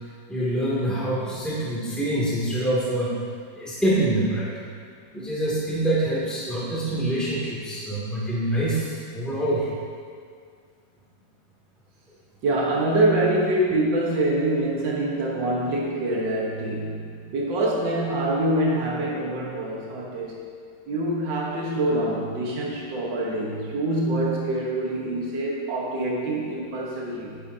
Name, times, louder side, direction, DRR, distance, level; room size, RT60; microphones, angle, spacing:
voice 1, 0.3-3.1 3.6-4.5 5.1-9.7, right 1 dB, ahead, -8 dB, 2.4 m, -25 dB
voice 2, 12.4-20.4 20.9-27.4, right 1 dB, 75° right, -4 dB, 2.0 m, -25 dB
11.0 x 10.5 x 2.8 m, 2.2 s
omnidirectional pair, 2.0 m